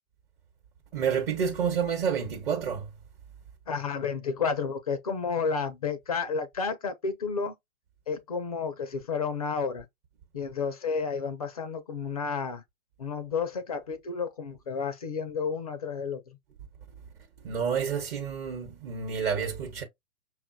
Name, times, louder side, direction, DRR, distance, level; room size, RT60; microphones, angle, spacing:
voice 1, 0.9-2.9 17.4-19.8, right 7 dB, 40° right, 1.1 m, -29 dB
voice 2, 3.7-7.5 8.1-9.9 10.3-12.6 13.0-16.4, left 5 dB, 30° left, 0.4 m, -31 dB
5.6 x 2.3 x 2.6 m
figure-of-eight pair, 120°, 43 cm